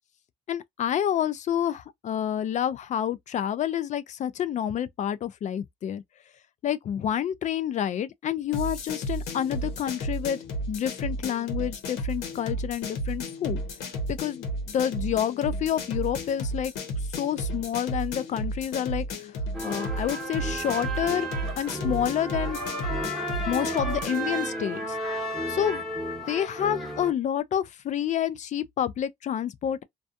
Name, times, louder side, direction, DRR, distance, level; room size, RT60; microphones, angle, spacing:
voice 1, 0.5-6.0 6.6-10.4 10.7-13.6 14.1-16.7 17.2-19.1 19.6-21.3 21.6-22.6 23.5-24.8 25.5-25.8 26.3-29.8, left 10 dB, 45° left, 0.4 m, -28 dB
sound 1, 8.5-24.3, equal, 85° left, 0.9 m, -33 dB
sound 2, 19.5-27.1, right 1 dB, ahead, 1.1 m, -33 dB
2.3 x 2.3 x 2.5 m
cardioid pair, 110°, 17 cm